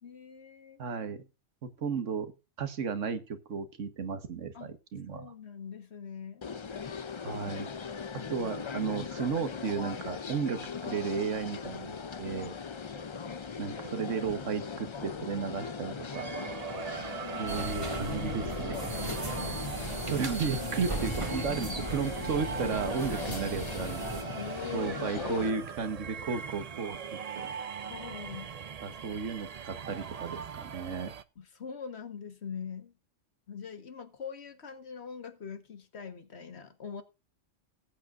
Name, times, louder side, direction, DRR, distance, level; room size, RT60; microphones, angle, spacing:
voice 1, 0.0-0.8 4.5-4.7 5.1-6.4 17.3-17.5 17.9-18.4 18.8-19.6 23.1-23.4 24.4-25.6 27.9-28.5 31.4-32.9 33.5-37.0, left 7 dB, 60° left, 1.6 m, -43 dB
voice 2, 0.8-1.2 1.6-2.3 2.6-5.3 7.2-7.7 8.1-12.5 13.6-16.2 17.4-18.9 20.1-24.0 24.7-27.5 28.8-31.1, right 5 dB, 85° right, 1.6 m, -34 dB
sound 1, 6.4-25.5, left 5 dB, 40° left, 0.4 m, -39 dB
sound 2, 16.1-31.2, right 7 dB, 45° right, 0.5 m, -41 dB
sound 3, 17.5-24.2, right 2 dB, 25° right, 1.4 m, -38 dB
18.5 x 8.7 x 2.5 m
omnidirectional pair, 1.2 m